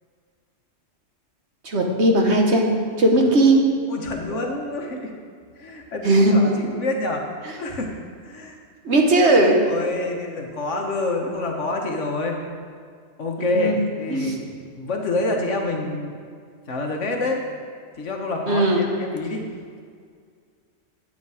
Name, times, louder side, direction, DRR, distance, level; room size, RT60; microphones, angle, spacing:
voice 1, 1.6-2.7 3.0-3.6 6.0-6.3 8.8-9.6 13.4-13.8 14.1-14.3 18.5-18.8, right 1 dB, 60° right, 1 dB, 1.6 m, -17 dB
voice 2, 3.9-5.1 5.6-7.3 7.6-7.9 8.2-8.6 9.6-12.4 13.2-16.1 16.7-17.4 18.0-19.5, left 2 dB, 70° left, 1 dB, 1.6 m, -27 dB
11.0 x 8.4 x 4.9 m, 2.1 s
omnidirectional pair, 1.3 m